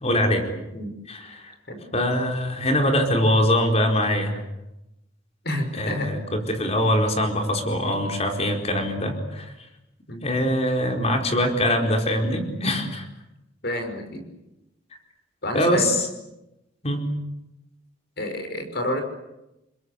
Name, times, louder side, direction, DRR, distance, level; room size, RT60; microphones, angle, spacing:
voice 1, 0.0-0.5 1.1-1.5 1.9-4.4 5.8-9.5 10.2-13.1 15.5-16.1 16.8-17.0, left 1 dB, 35° left, 3 dB, 4.5 m, -23 dB
voice 2, 5.4-6.2 10.1-10.3 13.6-14.3 15.4-15.9 18.2-19.0, left 1 dB, 60° left, 6 dB, 5.6 m, -29 dB
29.5 x 21.5 x 8.2 m, 0.93 s
head